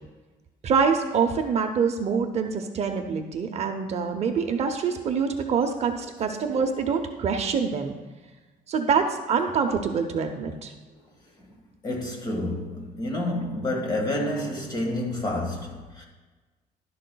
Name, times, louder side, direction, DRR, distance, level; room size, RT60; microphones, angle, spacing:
voice 1, 0.6-8.0 8.7-10.7, right 6 dB, 40° right, 0.6 m, -25 dB
voice 2, 11.8-16.0, left 1 dB, 25° left, 1.7 m, -29 dB
11.5 x 10.5 x 2.3 m
cardioid pair, 155°, 16 cm